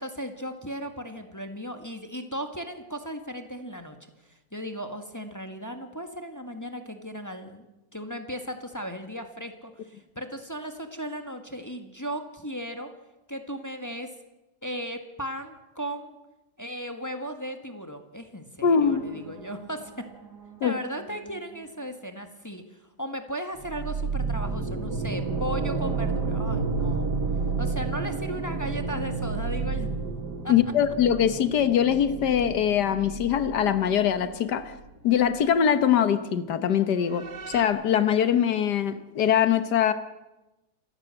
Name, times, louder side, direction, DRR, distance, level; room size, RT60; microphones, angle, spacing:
voice 1, 0.0-4.0 4.2-7.6 7.9-12.9 13.3-14.1 14.6-16.2 16.6-20.1 20.6-27.1 27.6-29.9 30.4-30.5, equal, 10° left, 1.6 m, -36 dB
voice 2, 18.6-19.0 20.6-20.7 30.5-34.7 35.0-39.9, left 8 dB, 90° left, 1.7 m, -22 dB
sound 1, 18.8-21.6 23.6-35.0 35.3-35.4 37.1-37.6, right 4 dB, 85° right, 2.4 m, -31 dB
27.5 x 15.0 x 7.7 m
omnidirectional pair, 1.7 m